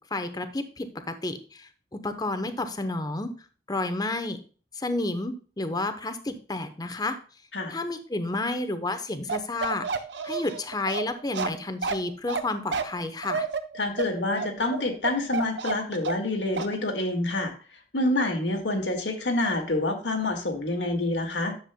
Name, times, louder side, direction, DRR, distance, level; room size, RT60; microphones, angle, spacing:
voice 1, 0.1-3.3 3.7-4.4 4.7-7.2 7.7-13.5, left 2 dB, 20° left, 9 dB, 0.8 m, -31 dB
Bark, 9.3-16.3 16.6-16.8, right 5 dB, 70° right, 0.7 m, -30 dB
voice 2, 13.8-17.5 17.9-21.5, left 2 dB, 75° left, 4 dB, 1.7 m, -27 dB
10.5 x 7.3 x 2.2 m, 0.38 s
head